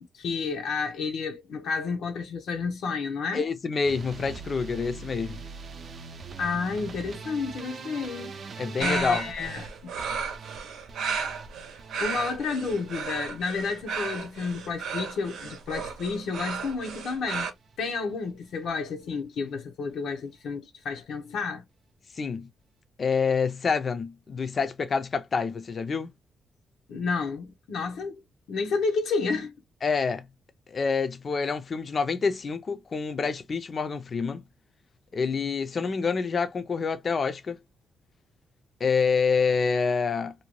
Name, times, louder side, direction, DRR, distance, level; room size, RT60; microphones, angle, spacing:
voice 1, 0.0-3.4 6.4-8.3 8.8-9.9 12.0-17.5 17.8-21.6 26.9-28.2 28.5-29.5, left 4 dB, 80° left, 0.7 m, -31 dB
voice 2, 3.3-5.4 8.6-9.2 22.2-22.5 23.0-26.1 29.8-30.2 30.7-34.4 35.1-37.6 38.8-40.3, left 5 dB, 40° left, 0.4 m, -27 dB
sound 1, 3.9-16.0 16.3-16.9 17.2-17.8 18.1-18.3 18.7-18.8 19.0-19.1, right 4 dB, 50° right, 0.5 m, -44 dB
sound 2, 8.8-17.5, right 5 dB, 85° right, 0.7 m, -34 dB
2.6 x 2.2 x 3.0 m
cardioid pair, 125°, 0 cm